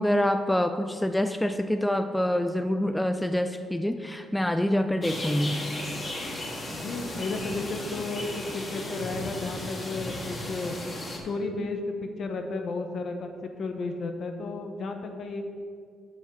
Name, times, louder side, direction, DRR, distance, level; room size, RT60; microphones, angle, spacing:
voice 1, 0.0-5.6, left 1 dB, 5° left, 8 dB, 0.4 m, -26 dB
sound 1, 5.0-11.2, left 1 dB, 35° left, 1.8 m, -35 dB
voice 2, 6.7-10.7 11.2-15.4, left 3 dB, 60° left, 5 dB, 1.1 m, -33 dB
7.9 x 5.8 x 6.4 m, 2.1 s
cardioid pair, 90°, 0 cm